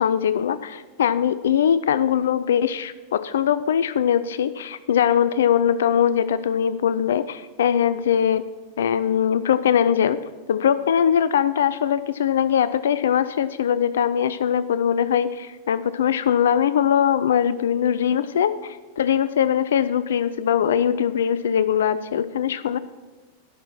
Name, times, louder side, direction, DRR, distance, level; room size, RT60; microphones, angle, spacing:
voice 1, 0.0-8.5 8.8-10.2 10.5-22.8, left 8 dB, 60° left, 15 dB, 0.3 m, -21 dB
11.5 x 6.3 x 5.9 m, 1.2 s
figure-of-eight pair, 90°, 0 cm